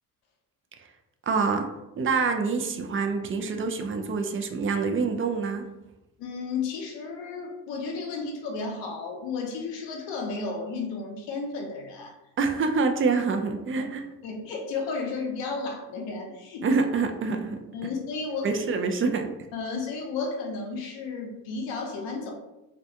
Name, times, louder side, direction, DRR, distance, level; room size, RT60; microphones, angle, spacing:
voice 1, 1.3-1.7 1.9-5.7 12.4-14.0 16.6-17.6 18.4-19.3, right 4 dB, 30° right, 5 dB, 0.4 m, -26 dB
voice 2, 6.2-12.2 14.2-16.6 17.7-18.6 19.5-22.3, left 4 dB, 80° left, 1 dB, 0.7 m, -33 dB
2.3 x 2.2 x 2.7 m, 0.98 s
hypercardioid pair, 50°, 43 cm